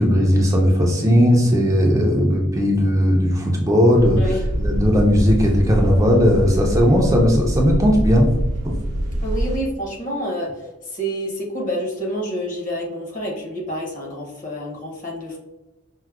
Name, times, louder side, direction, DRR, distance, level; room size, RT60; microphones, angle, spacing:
voice 1, 0.0-4.2 4.6-8.3 8.6-8.7, equal, 15° right, 0 dB, 0.3 m, -17 dB
sound 1, 3.9-9.6, right 1 dB, 80° right, 0.5 m, -24 dB
voice 2, 9.2-15.4, equal, 35° left, -1 dB, 0.7 m, -28 dB
4.5 x 2.0 x 2.3 m, 1.0 s
head